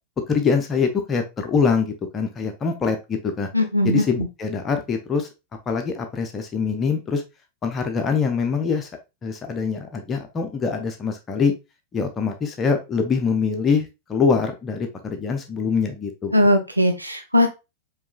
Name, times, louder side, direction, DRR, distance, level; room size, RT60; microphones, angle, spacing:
voice 1, 0.3-3.5 3.8-5.3 5.7-7.2 7.6-8.9 9.2-11.5 11.9-16.3, left 5 dB, 25° left, 4 dB, 0.6 m, -24 dB
voice 2, 3.5-4.3 16.3-17.5, left 1 dB, 85° right, 5 dB, 0.5 m, -19 dB
4.6 x 2.9 x 2.3 m, 0.26 s
figure-of-eight pair, 90°, 0 cm